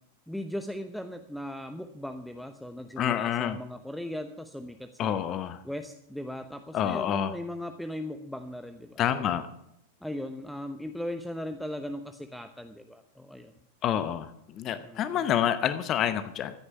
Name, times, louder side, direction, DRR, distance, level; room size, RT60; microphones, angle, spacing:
voice 1, 0.3-5.2 5.6-9.3 10.0-13.5 14.8-15.2, left 1 dB, ahead, 8 dB, 0.8 m, -38 dB
voice 2, 3.0-3.6 5.0-5.6 6.7-7.3 9.0-9.5 13.8-16.5, left 10 dB, 30° left, 12 dB, 0.8 m, -28 dB
15.0 x 9.7 x 7.1 m, 0.77 s
figure-of-eight pair, 90°, 0 cm